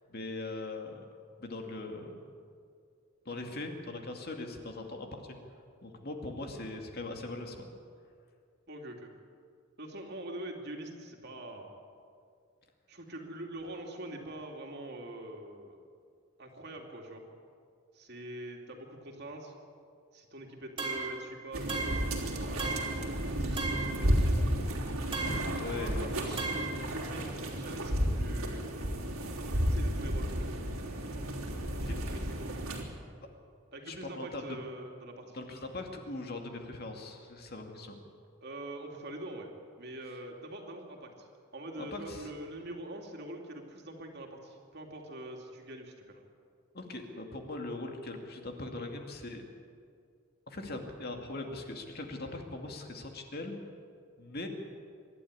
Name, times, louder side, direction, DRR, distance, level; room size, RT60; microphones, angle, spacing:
voice 1, 0.1-1.0 1.4-2.3 3.3-5.2 5.8-7.7 25.2-26.4 26.7-27.0 31.8-32.0 33.9-34.6 35.3-38.0 41.8-42.3 46.7-49.4 50.5-53.6 54.2-54.5, left 2 dB, 45° left, 3 dB, 2.3 m, -40 dB
voice 2, 8.7-9.1 9.8-11.7 12.9-15.9 16.4-17.2 17.9-19.5 20.1-22.8 23.3-24.3 25.6-28.6 29.7-30.3 31.8-32.5 33.7-35.4 38.4-39.5 39.8-46.2, right 1 dB, 50° right, 1 dB, 2.9 m, -44 dB
sound 1, 20.8-21.2 21.7-22.1 22.6-23.0 23.6-24.0 25.1-25.6 26.4-26.8, right 4 dB, 25° right, 2.9 m, -35 dB
sound 2, 21.5-32.8, equal, 85° right, 3.4 m, -32 dB
25.5 x 12.0 x 9.7 m, 2.3 s
head